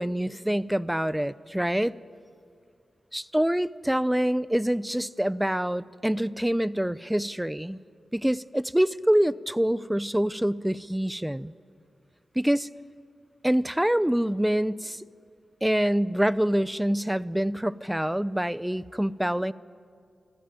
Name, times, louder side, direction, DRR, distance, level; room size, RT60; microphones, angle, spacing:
voice 1, 0.0-2.0 3.1-7.8 8.1-11.5 12.4-12.7 13.4-15.0 15.6-19.5, equal, 5° right, 19 dB, 0.7 m, -26 dB
25.0 x 15.5 x 9.0 m, 2.4 s
cardioid pair, 45°, 0 cm